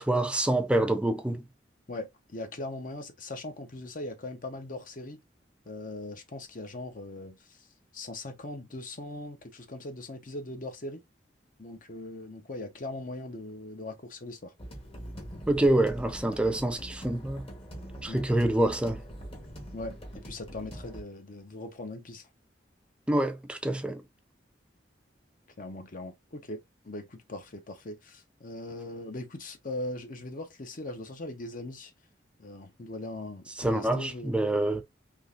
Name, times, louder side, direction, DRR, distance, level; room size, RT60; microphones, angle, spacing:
voice 1, 0.0-1.4 15.5-17.4 18.0-19.0 23.1-24.0 33.6-34.8, right 1 dB, 5° right, 0.4 m, -26 dB
voice 2, 1.9-5.2 5.7-7.7 7.9-11.0 11.6-14.5 18.1-18.2 19.7-22.3 25.6-31.9 32.4-34.3, left 2 dB, 50° left, 0.8 m, -40 dB
sound 1, 14.6-21.0, equal, 30° left, 1.1 m, -43 dB
3.7 x 2.9 x 2.5 m
head